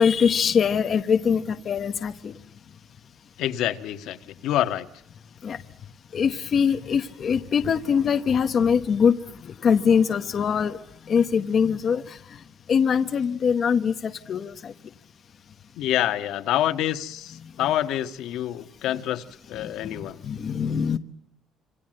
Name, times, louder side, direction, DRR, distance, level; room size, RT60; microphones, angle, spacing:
voice 1, 0.0-2.3 5.4-5.6 6.1-9.2 9.4-10.8 11.1-12.2 12.7-14.7 17.6-17.7 19.6-21.0, left 7 dB, 35° left, 7 dB, 1.0 m, -23 dB
voice 2, 3.4-4.9 15.8-20.2, left 12 dB, 70° left, 8 dB, 1.7 m, -27 dB
27.5 x 26.0 x 7.8 m, 0.71 s
cardioid pair, 175°, 0 cm